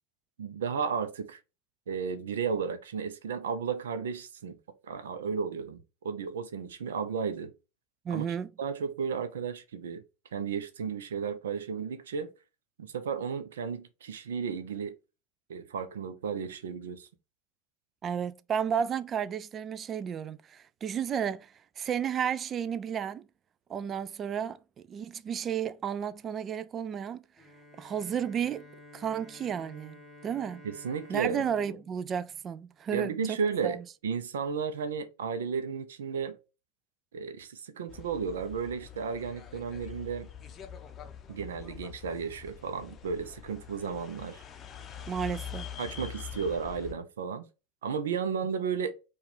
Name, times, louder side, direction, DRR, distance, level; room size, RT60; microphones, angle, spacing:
voice 1, 0.4-1.4 1.9-4.6 4.9-7.5 8.1-8.3 8.6-10.0 10.3-12.3 12.8-14.9 15.5-17.1 30.6-31.4 32.9-33.8 34.0-36.4 37.1-40.3 41.3-44.4 45.8-47.4 47.8-48.9, right 6 dB, 75° right, 0.6 m, -33 dB
voice 2, 8.1-8.5 18.0-23.3 23.7-24.6 24.9-27.2 27.8-28.6 28.9-30.6 31.1-33.4 33.6-33.8 45.1-45.7, right 8 dB, 30° right, 0.3 m, -32 dB
Bowed string instrument, 27.4-33.1, left 1 dB, 5° left, 1.3 m, -53 dB
sound 1, 37.9-46.9, left 8 dB, 30° left, 0.6 m, -44 dB
4.7 x 2.4 x 3.3 m
hypercardioid pair, 90°, 0 cm